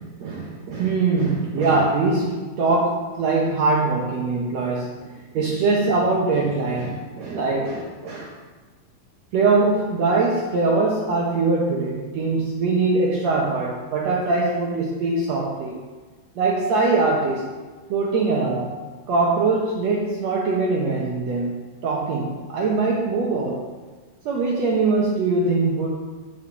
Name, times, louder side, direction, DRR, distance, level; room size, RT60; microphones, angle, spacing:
voice 1, 0.0-5.1 5.3-8.3 9.3-15.8 16.4-17.5 17.9-18.8 19.1-23.7 24.2-25.9, right 3 dB, 85° right, -2 dB, 1.5 m, -22 dB
10.0 x 5.0 x 7.0 m, 1.3 s
omnidirectional pair, 4.6 m